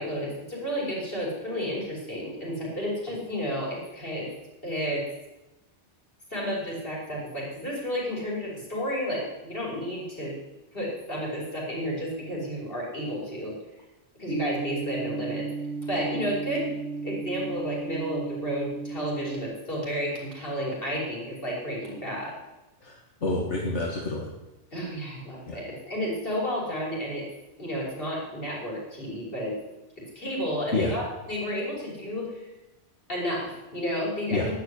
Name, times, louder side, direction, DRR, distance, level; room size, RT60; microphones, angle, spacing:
voice 1, 0.0-4.3 4.6-5.0 6.3-10.4 10.7-13.6 14.2-15.5 15.9-16.7 17.0-22.4 24.7-27.2 27.6-29.6 30.0-32.5 33.1-34.6, equal, 55° left, -4 dB, 5.9 m, -31 dB
sound 1, 14.3-19.4, right 4 dB, 75° right, 1.5 m, -34 dB
voice 2, 22.8-24.3 25.5-25.6 30.7-31.0 34.3-34.5, left 2 dB, 80° left, -2 dB, 2.2 m, -28 dB
11.5 x 10.0 x 9.8 m, 1.0 s
omnidirectional pair, 1.2 m